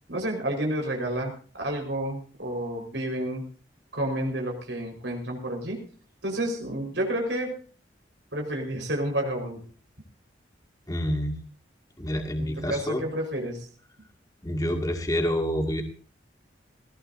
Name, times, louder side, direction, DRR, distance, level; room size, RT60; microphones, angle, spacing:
voice 1, 0.1-3.4 3.9-5.8 6.2-7.5 8.3-9.6 12.4-13.7, right 1 dB, 75° right, 1 dB, 4.7 m, -30 dB
voice 2, 10.9-11.4 12.0-13.0 14.4-15.8, equal, 20° left, 3 dB, 2.2 m, -27 dB
19.0 x 18.5 x 2.7 m, 0.40 s
head